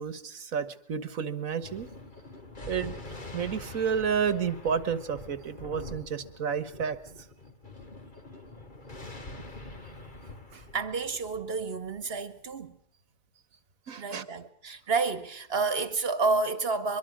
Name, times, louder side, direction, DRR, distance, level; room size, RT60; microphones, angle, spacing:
voice 1, 0.0-1.9 2.7-3.0 3.3-7.0 13.9-14.3, right 7 dB, 80° right, 1.8 m, -31 dB
Thunder, 1.6-12.5, left 2 dB, 35° left, 2.5 m, -45 dB
voice 2, 10.5-12.8 14.0-17.0, right 4 dB, 45° right, 1.8 m, -30 dB
23.5 x 23.5 x 6.3 m
omnidirectional pair, 1.4 m